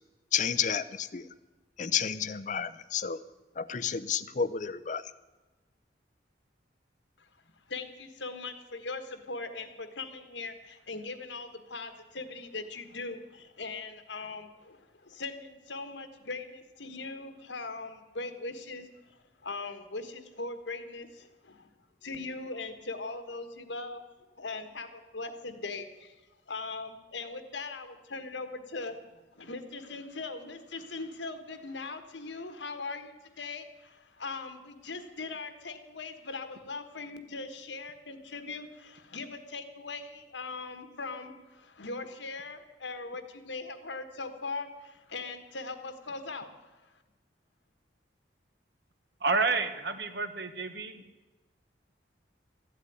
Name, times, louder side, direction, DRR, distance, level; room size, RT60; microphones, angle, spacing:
voice 1, 0.3-1.3 1.8-3.2 3.6-5.0, left 7 dB, 40° left, 15 dB, 0.6 m, -31 dB
voice 2, 7.7-18.9 19.4-21.7 22.0-24.0 24.4-26.1 26.5-29.0 29.3-46.8, left 3 dB, 80° left, 9 dB, 1.5 m, -40 dB
voice 3, 49.2-51.0, right 4 dB, 65° right, 9 dB, 1.2 m, -29 dB
14.0 x 8.4 x 9.4 m, 1.1 s
head